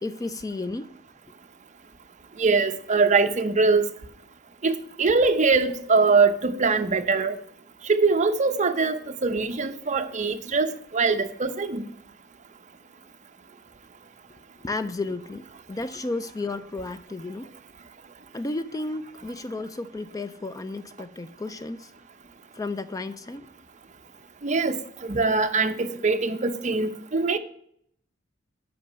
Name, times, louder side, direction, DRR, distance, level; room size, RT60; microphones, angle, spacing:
voice 1, 0.0-0.9 14.6-17.5 18.3-21.9 22.5-23.5, left 2 dB, 20° left, 0.3 m, -33 dB
voice 2, 2.4-3.9 4.6-7.4 7.8-11.8 24.4-24.8 25.1-27.4, right 4 dB, 40° right, 0.7 m, -22 dB
8.3 x 6.0 x 6.7 m
head